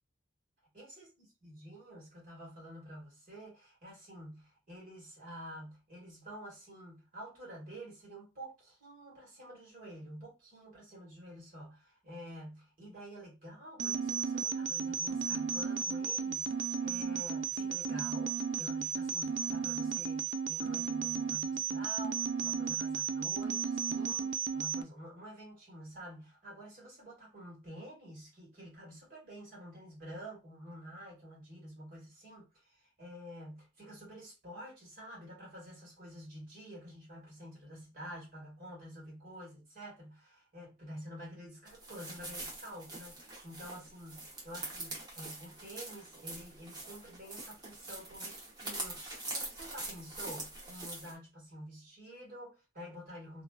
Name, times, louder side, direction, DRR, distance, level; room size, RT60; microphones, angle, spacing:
voice 1, 0.7-53.4, equal, 50° right, 1.7 m, -49 dB
sound 1, 13.8-24.8, right 6 dB, 75° right, 0.4 m, -34 dB
sound 2, 41.7-51.1, right 2 dB, 20° right, 0.9 m, -44 dB
2.8 x 2.4 x 2.4 m
head